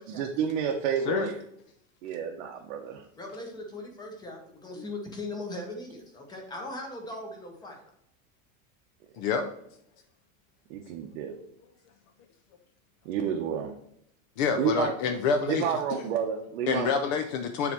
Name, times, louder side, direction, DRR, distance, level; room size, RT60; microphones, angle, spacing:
voice 1, 0.1-1.3 2.0-3.0 10.7-11.3 13.0-13.7 14.6-14.9 15.5-16.9, right 7 dB, 65° right, 1 dB, 0.9 m, -30 dB
voice 2, 3.2-7.9, left 2 dB, 10° left, 2 dB, 0.8 m, -39 dB
voice 3, 9.2-9.5 14.4-15.7 16.7-17.7, left 5 dB, 35° left, 7 dB, 0.4 m, -27 dB
7.0 x 3.2 x 5.9 m, 0.74 s
supercardioid pair, 175°, 39 cm